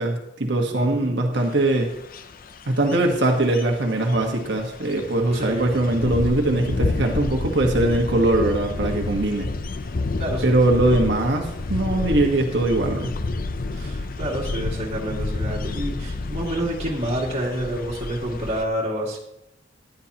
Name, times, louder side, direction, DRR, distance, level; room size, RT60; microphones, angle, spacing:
voice 1, 0.0-1.9 2.7-9.5 10.4-13.1, right 2 dB, 65° right, 2 dB, 1.4 m, -21 dB
voice 2, 0.7-1.2 5.3-5.8 10.2-10.4 13.7-19.2, right 1 dB, 35° right, -5 dB, 2.3 m, -28 dB
sound 1, 1.3-18.6, left 3 dB, 50° left, 0.6 m, -30 dB
14.5 x 10.5 x 2.9 m, 0.84 s
head